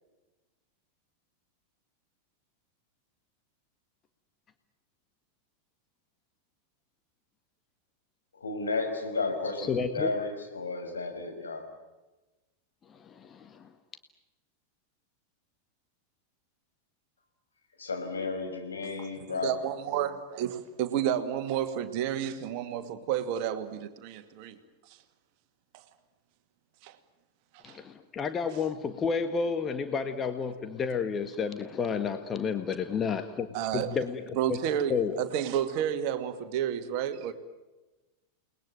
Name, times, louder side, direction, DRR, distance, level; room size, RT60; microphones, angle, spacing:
voice 1, 8.4-11.6 17.8-19.5, left 3 dB, 70° left, 5.6 m, -33 dB
voice 2, 9.6-10.1 12.9-13.7 27.6-33.5 33.7-34.6 34.9-35.2, left 5 dB, 25° left, 1.6 m, -31 dB
voice 3, 19.3-24.6 26.8-27.0 27.7-27.8 33.5-34.0 34.4-37.3, right 10 dB, 45° right, 2.1 m, -31 dB
30.0 x 20.5 x 9.1 m
figure-of-eight pair, 90°, 0 cm